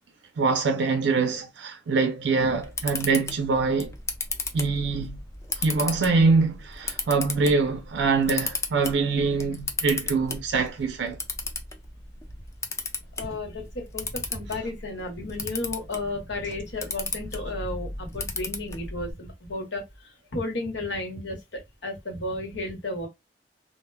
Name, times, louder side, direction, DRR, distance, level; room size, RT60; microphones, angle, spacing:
voice 1, 0.4-3.9 4.5-5.2 5.6-11.2 14.5-14.7, right 4 dB, 75° right, 0.4 m, -24 dB
Camera, 2.4-19.1, left 3 dB, 15° left, 0.3 m, -35 dB
voice 2, 13.2-23.1, left 2 dB, 80° left, 1.0 m, -33 dB
2.2 x 2.0 x 3.2 m
head